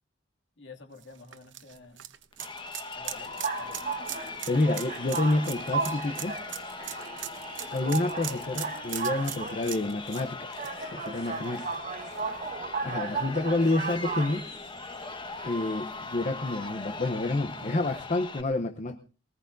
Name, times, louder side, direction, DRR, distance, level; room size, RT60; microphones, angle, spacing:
voice 1, 0.6-2.1 2.9-3.3 3.6-3.8, left 4 dB, 65° left, 3 dB, 2.4 m, -49 dB
sound 1, 1.0-11.7 12.1-12.2 13.7-13.8, right 12 dB, 75° right, 1.0 m, -40 dB
Crowd, 2.3-18.4, left 3 dB, 25° left, 1.3 m, -40 dB
sound 2, 3.2-18.0, right 4 dB, 40° right, 1.3 m, -36 dB
voice 2, 4.2-6.4 7.7-10.6 10.9-11.8 12.8-14.5 15.4-19.0, left 2 dB, 40° left, 7 dB, 0.8 m, -29 dB
21.5 x 19.0 x 2.6 m, 0.36 s
head